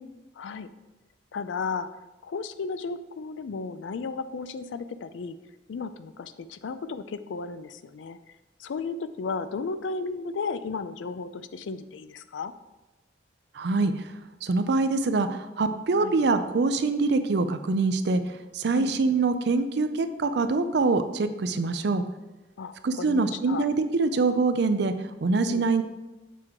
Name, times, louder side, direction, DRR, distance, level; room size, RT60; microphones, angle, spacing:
voice 1, 0.4-0.7 1.3-5.4 5.7-12.5 16.0-16.1 18.7-19.2 22.6-23.7 25.5-25.7, left 4 dB, 85° left, 12 dB, 0.4 m, -34 dB
voice 2, 13.5-14.1 14.4-22.0 22.8-25.8, right 3 dB, 65° right, 10 dB, 0.5 m, -24 dB
6.8 x 4.7 x 3.6 m, 1.1 s
head